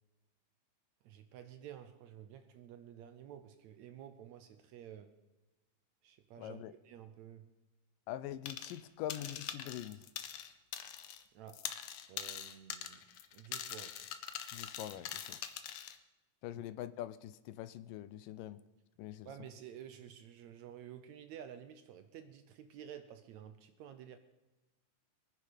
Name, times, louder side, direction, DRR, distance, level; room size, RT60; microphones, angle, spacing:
voice 1, 1.0-5.1 6.0-7.5 11.3-11.7 12.1-13.1 13.3-14.0 16.5-16.6 19.3-24.2, right 9 dB, 75° right, 9 dB, 1.8 m, -51 dB
voice 2, 6.4-6.7 8.1-10.1 14.5-15.4 16.4-18.6 19.0-19.3, left 12 dB, 85° left, 14 dB, 2.3 m, -44 dB
sound 1, 8.5-8.8 9.1-11.2 11.5-16.0, left 10 dB, 70° left, 1.7 m, -43 dB
23.5 x 9.8 x 5.1 m, 1.1 s
omnidirectional pair, 3.8 m